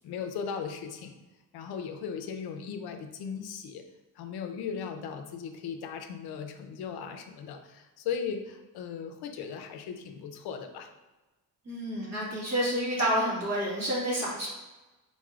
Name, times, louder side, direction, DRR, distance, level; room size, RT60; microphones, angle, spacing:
voice 1, 0.0-1.1 1.5-3.8 4.2-10.9, left 6 dB, 90° left, 6 dB, 0.5 m, -37 dB
voice 2, 11.6-14.5, equal, 45° right, -5 dB, 1.5 m, -29 dB
4.1 x 3.1 x 2.4 m, 1.1 s
cardioid pair, 105°, 37 cm